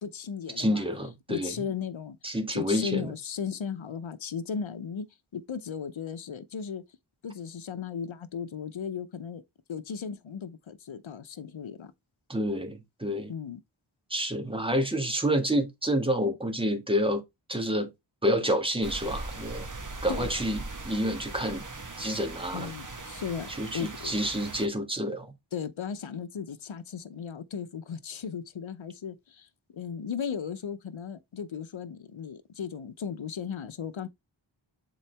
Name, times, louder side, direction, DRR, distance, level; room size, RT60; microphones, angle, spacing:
voice 1, 0.0-0.8 1.3-5.1 5.3-6.8 7.2-9.4 9.7-11.9 13.3-13.6 20.1-20.3 22.5-24.1 25.5-34.1, left 7 dB, 75° left, 0.8 m, -36 dB
voice 2, 0.6-1.6 2.2-3.1 12.3-13.3 14.1-17.2 17.5-17.9 18.2-19.7 20.0-20.6 20.8-21.6 22.0-22.7 23.6-25.3, equal, 10° right, 1.8 m, -28 dB
sound 1, 18.8-24.7, right 3 dB, 40° right, 1.4 m, -40 dB
7.3 x 3.9 x 3.4 m
wide cardioid pair, 40°, 47 cm